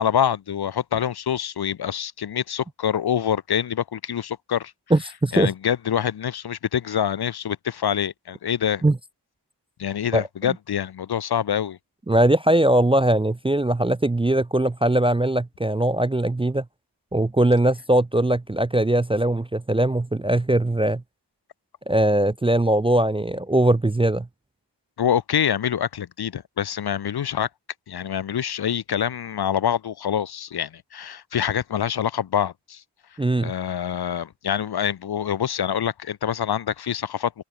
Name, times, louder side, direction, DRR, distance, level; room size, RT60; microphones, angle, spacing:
voice 1, 0.0-4.7 5.3-8.8 9.8-11.8 25.0-27.5 27.9-32.8 33.4-37.4, left 9 dB, 60° left, 0.6 m, -25 dB
voice 2, 4.9-5.5 8.8-9.0 10.1-10.5 12.1-16.6 17.1-21.0 21.9-24.3 33.2-33.5, right 1 dB, 15° right, 0.4 m, -20 dB
wide cardioid pair, 90°, 44 cm